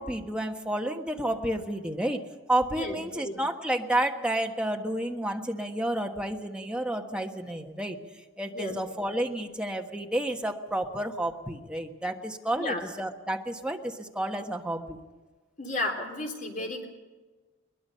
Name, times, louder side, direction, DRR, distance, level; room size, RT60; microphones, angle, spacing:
voice 1, 0.0-2.2 2.5-8.0 8.4-15.0, right 1 dB, 5° right, 2 dB, 1.4 m, -30 dB
voice 2, 2.7-3.4 8.5-8.8 12.5-12.8 15.6-16.9, left 1 dB, 40° left, 2 dB, 3.4 m, -33 dB
22.0 x 21.0 x 5.7 m, 1.3 s
head